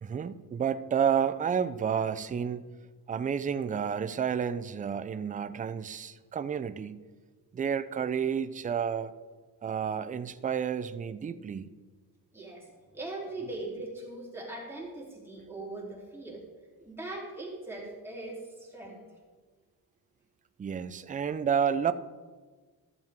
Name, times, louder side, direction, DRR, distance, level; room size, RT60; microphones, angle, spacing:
voice 1, 0.0-2.7 3.1-7.0 7.5-9.1 9.6-11.7 20.6-21.9, right 7 dB, 20° right, 12 dB, 0.4 m, -30 dB
voice 2, 12.3-16.4 16.8-19.0, right 2 dB, 5° right, -5 dB, 3.2 m, -40 dB
14.5 x 7.4 x 3.6 m, 1.4 s
cardioid pair, 120°, 38 cm